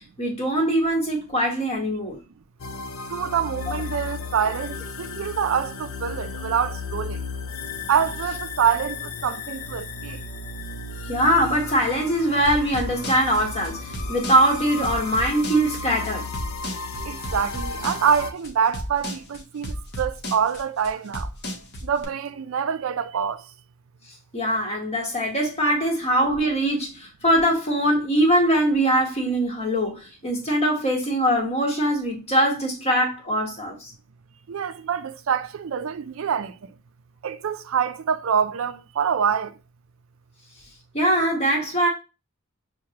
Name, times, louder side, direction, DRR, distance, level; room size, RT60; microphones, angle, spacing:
voice 1, 0.2-2.2 3.7-3.8 11.1-16.3 24.3-33.9 40.9-41.9, right 1 dB, 30° left, 1.4 m, -22 dB
sound 1, 2.6-18.3, left 4 dB, 80° left, 0.6 m, -34 dB
voice 2, 3.1-7.2 7.9-10.2 17.1-21.3 21.8-23.4 34.5-36.5 37.2-39.5, right 7 dB, 70° right, 0.4 m, -25 dB
sound 2, 12.4-22.0, equal, 55° left, 0.9 m, -33 dB
6.3 x 2.2 x 2.8 m
head